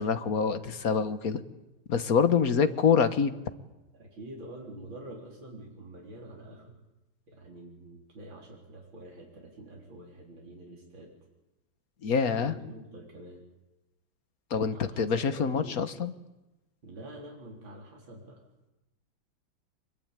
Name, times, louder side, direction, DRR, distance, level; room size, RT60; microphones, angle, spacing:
voice 1, 0.0-1.4 1.9-3.3 12.0-12.5 14.5-16.1, left 6 dB, 50° left, 11 dB, 1.7 m, -26 dB
voice 2, 3.9-6.8 7.3-11.1 12.3-13.4 14.7-15.8 16.8-18.4, right 1 dB, 75° right, -1 dB, 4.6 m, -46 dB
25.0 x 22.0 x 9.1 m, 0.99 s
omnidirectional pair, 2.1 m